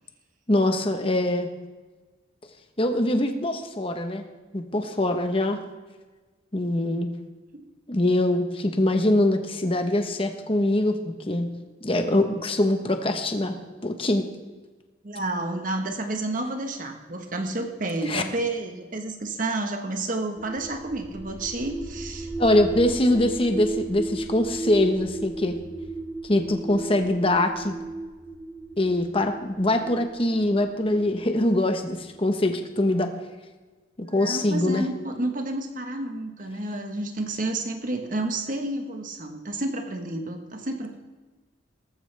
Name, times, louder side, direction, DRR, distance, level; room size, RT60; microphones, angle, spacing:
voice 1, 0.5-1.5 2.8-4.2 4.5-5.6 6.5-7.1 7.9-11.5 11.8-13.5 13.8-14.3 18.1-18.2 22.4-25.6 26.2-27.7 28.8-33.1 34.0-34.9, left 1 dB, 30° left, 6 dB, 1.0 m, -23 dB
voice 2, 15.0-22.3 34.2-41.0, right 2 dB, 45° right, 5 dB, 1.2 m, -30 dB
sound 1, 20.4-32.2, right 2 dB, 5° right, 4.0 m, -36 dB
19.0 x 14.0 x 3.4 m, 1.3 s
head